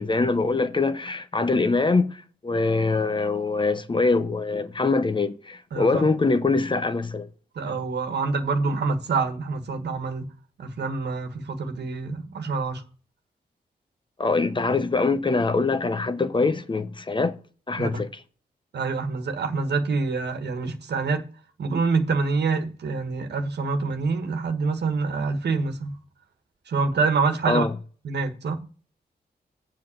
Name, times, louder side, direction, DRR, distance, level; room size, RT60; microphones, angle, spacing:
voice 1, 0.0-7.3 7.7-7.8 14.2-17.4 17.7-18.1 27.5-27.7, left 3 dB, 30° left, 0.8 m, -23 dB
voice 2, 5.7-6.1 7.5-10.2 10.6-12.8 17.8-17.9 18.7-21.2 21.6-26.0 26.7-27.7 28.0-28.6, right 4 dB, 85° right, 1.4 m, -26 dB
7.6 x 5.7 x 7.0 m
wide cardioid pair, 105°, 17 cm